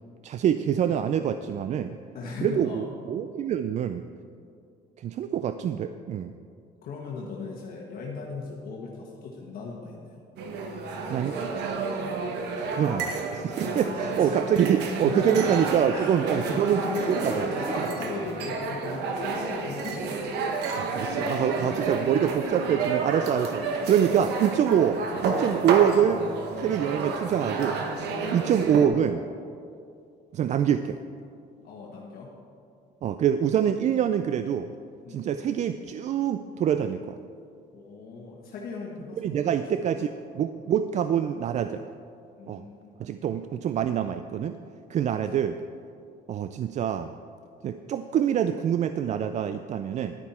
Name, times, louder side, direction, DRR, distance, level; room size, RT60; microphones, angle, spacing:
voice 1, 0.2-1.9 2.4-4.0 5.0-6.3 11.1-11.3 12.5-16.8 17.2-17.5 20.8-26.2 26.6-27.8 28.3-29.2 30.3-31.0 33.0-34.7 35.1-37.2 39.2-40.1 40.3-41.8 42.5-42.6 43.0-44.6 44.9-45.6 46.3-47.1 47.6-50.2, right 9 dB, 45° right, 10 dB, 0.4 m, -25 dB
voice 2, 2.1-2.9 6.8-10.2 13.6-14.4 15.0-20.1 20.6-22.5 26.7-26.9 28.1-28.5 31.6-32.3 35.0-35.3 37.7-40.4 42.4-43.1 45.4-45.5, left 4 dB, 60° left, -2 dB, 1.4 m, -38 dB
sound 1, 10.4-28.9, right 4 dB, 80° right, 1.1 m, -30 dB
10.5 x 9.7 x 4.3 m, 2.4 s
cardioid pair, 110°, 17 cm